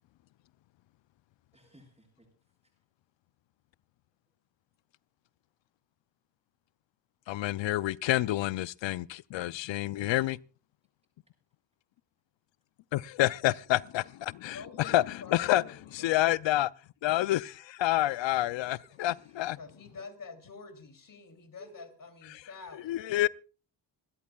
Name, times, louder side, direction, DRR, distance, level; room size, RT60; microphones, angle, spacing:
voice 1, 1.5-2.7 10.1-10.2 13.0-13.1 18.6-18.7 19.1-19.4 19.9-20.0 21.6-21.8, right 2 dB, 15° right, 7.7 m, -58 dB
voice 2, 7.3-10.4 12.9-15.6 15.9-16.7 17.0-19.6 22.3-22.4 22.9-23.3, left 15 dB, 80° left, 0.5 m, -28 dB
voice 3, 14.5-16.7 19.6-22.9, left 4 dB, 45° left, 2.9 m, -48 dB
26.0 x 12.5 x 2.3 m
cardioid pair, 70°, 44 cm